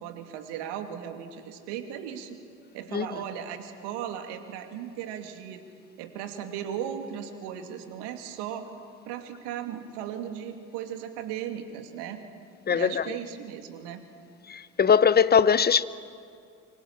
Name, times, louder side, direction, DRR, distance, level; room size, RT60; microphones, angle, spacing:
voice 1, 0.0-2.4 2.7-5.6 6.0-8.7 9.0-12.2 12.7-14.0, right 9 dB, 60° right, 2.7 m, -37 dB
voice 2, 12.7-13.1 14.5-15.8, left 7 dB, 20° left, 0.9 m, -21 dB
26.0 x 25.0 x 7.5 m
figure-of-eight pair, 60°, 47 cm